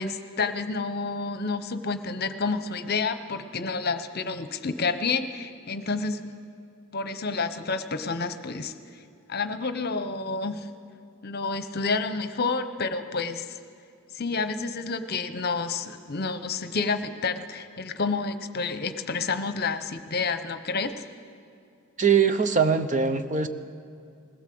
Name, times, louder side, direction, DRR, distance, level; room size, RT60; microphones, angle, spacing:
voice 1, 0.0-6.3 6.9-8.7 9.3-10.7 11.2-13.6 14.1-21.0, left 4 dB, 45° left, 10 dB, 0.9 m, -29 dB
voice 2, 22.0-23.5, right 6 dB, 35° right, 9 dB, 0.8 m, -22 dB
20.5 x 16.5 x 7.8 m, 2.5 s
head